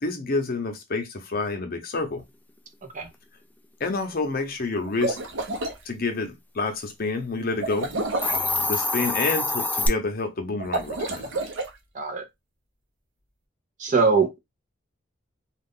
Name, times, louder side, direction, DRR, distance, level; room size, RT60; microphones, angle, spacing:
voice 1, 0.0-2.2 3.8-5.2 5.9-7.9 8.3-11.3, left 3 dB, 50° left, 0.7 m, -28 dB
sound 1, 4.8-5.8 7.6-8.5 10.6-11.7, right 2 dB, 85° right, 0.8 m, -29 dB
Hiss, 8.1-9.9, left 2 dB, 10° left, 0.3 m, -25 dB
voice 2, 11.9-12.3 13.8-14.4, right 4 dB, 40° right, 0.6 m, -22 dB
2.4 x 2.4 x 3.5 m
head